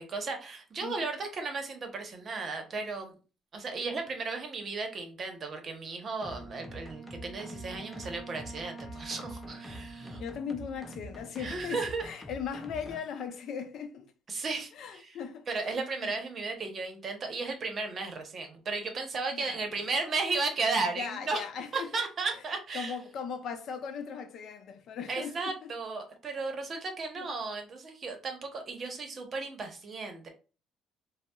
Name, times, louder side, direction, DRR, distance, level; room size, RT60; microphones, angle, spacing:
voice 1, 0.0-3.1 3.5-10.2 11.4-12.0 14.3-15.2 15.5-21.4 21.7-22.9 25.1-30.3, right 3 dB, 40° right, 0.8 m, -35 dB
Wind instrument woodwind instrument, 6.2-11.7, right 4 dB, 35° left, 0.9 m, -48 dB
sound 1, 6.2-13.0, left 1 dB, 10° left, 0.5 m, -46 dB
voice 2, 10.1-14.1 14.7-16.1 19.3-19.6 21.0-22.1 22.7-25.7 27.2-27.3, left 6 dB, 60° left, 0.5 m, -39 dB
3.9 x 2.0 x 2.2 m
cardioid pair, 105°, 0 cm